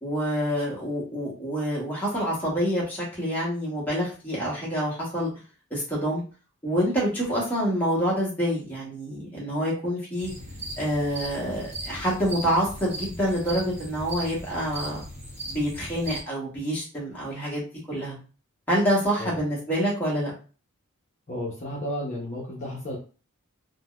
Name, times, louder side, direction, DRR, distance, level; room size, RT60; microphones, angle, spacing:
voice 1, 0.0-5.3 5.7-6.2 6.6-10.3 10.8-15.0 15.5-17.6 17.9-18.2 18.7-20.3, equal, 10° left, -6 dB, 1.2 m, -27 dB
sound 1, 10.2-16.2, right 1 dB, 30° right, 0.8 m, -38 dB
voice 2, 21.3-23.0, left 1 dB, 35° left, -5 dB, 0.8 m, -32 dB
3.7 x 2.2 x 2.4 m, 0.36 s
head